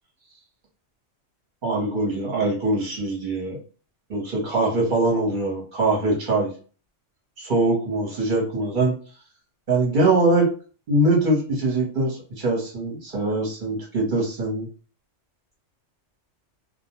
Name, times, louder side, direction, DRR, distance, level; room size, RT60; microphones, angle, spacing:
voice 1, 1.6-3.6 4.1-6.5 7.4-9.0 9.7-10.5 10.9-14.7, right 2 dB, 45° right, -2 dB, 1.1 m, -22 dB
2.4 x 2.2 x 2.9 m, 0.38 s
omnidirectional pair, 1.3 m